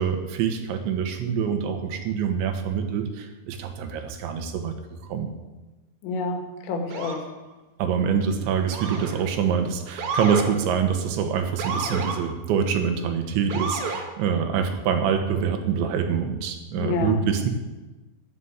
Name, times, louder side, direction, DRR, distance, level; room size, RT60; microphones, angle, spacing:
voice 1, 0.0-4.7 5.1-5.3 7.8-17.5, right 7 dB, 80° right, 6 dB, 3.6 m, -25 dB
voice 2, 6.0-7.3 16.8-17.2, left 3 dB, 85° left, 4 dB, 4.0 m, -28 dB
Motor vehicle (road) / Siren, 6.9-7.3 8.7-9.2 10.0-10.5 11.6-12.2 13.5-14.0, right 4 dB, 60° right, 3.1 m, -30 dB
11.5 x 10.0 x 8.1 m, 1.2 s
omnidirectional pair, 5.2 m